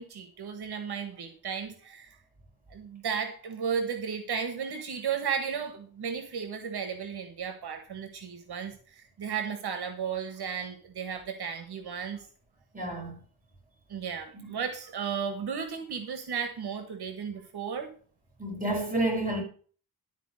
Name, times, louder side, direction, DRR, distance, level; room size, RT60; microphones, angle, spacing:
voice 1, 0.0-2.1 2.7-12.3 13.9-17.9, right 7 dB, 80° right, 1.5 m, -34 dB
voice 2, 12.7-13.2 14.3-14.5 18.4-19.4, right 1 dB, 20° right, 5.2 m, -30 dB
12.5 x 4.6 x 6.4 m
wide cardioid pair, 100°, 38 cm